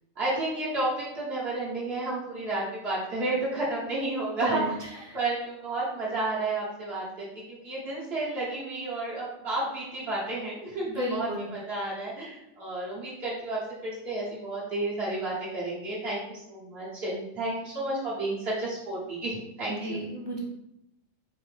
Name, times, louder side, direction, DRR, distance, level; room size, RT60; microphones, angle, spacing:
voice 1, 0.2-4.7 5.1-20.0, right 2 dB, 55° right, -8 dB, 1.2 m, -31 dB
voice 2, 11.0-11.5 19.8-20.4, equal, 30° right, -4 dB, 0.5 m, -32 dB
4.2 x 2.6 x 3.2 m, 0.90 s
omnidirectional pair, 1.3 m